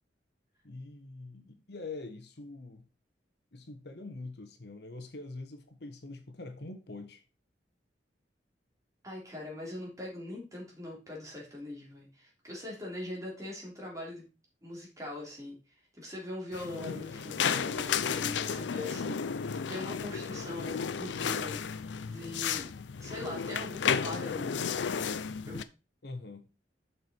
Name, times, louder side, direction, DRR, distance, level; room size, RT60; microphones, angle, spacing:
voice 1, 0.6-2.8 3.5-7.2 26.0-26.5, left 2 dB, 65° left, 1.2 m, -44 dB
voice 2, 9.0-14.2 14.6-15.6 15.9-22.7 23.0-24.8 25.5-25.6, left 1 dB, 20° right, 3.3 m, -42 dB
sound 1, 16.5-25.6, left 7 dB, 85° left, 0.5 m, -33 dB
6.8 x 6.1 x 4.5 m
head